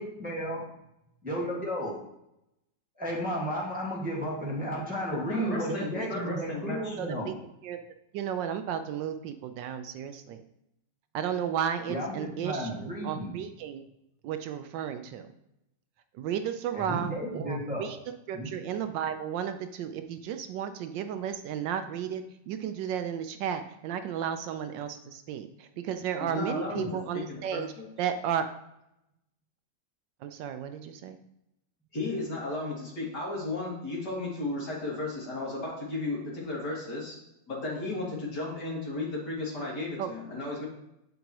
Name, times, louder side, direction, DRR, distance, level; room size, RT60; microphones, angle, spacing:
voice 1, 0.0-0.6 1.2-1.9 3.0-7.3 11.9-13.3 16.7-17.9 18.3-18.5, equal, 5° right, -5 dB, 1.4 m, -33 dB
voice 2, 5.3-7.0 26.2-26.9 27.1-27.9 31.9-37.2 37.5-40.6, left 2 dB, 60° left, -4 dB, 2.6 m, -34 dB
voice 3, 7.0-7.3 7.6-7.8 8.1-10.4 11.1-13.9 14.2-15.3 16.1-18.0 18.3-27.7 28.0-28.5 30.2-31.2 40.0-40.1, right 8 dB, 75° right, 8 dB, 1.2 m, -33 dB
8.6 x 5.3 x 3.0 m, 0.83 s
omnidirectional pair, 2.1 m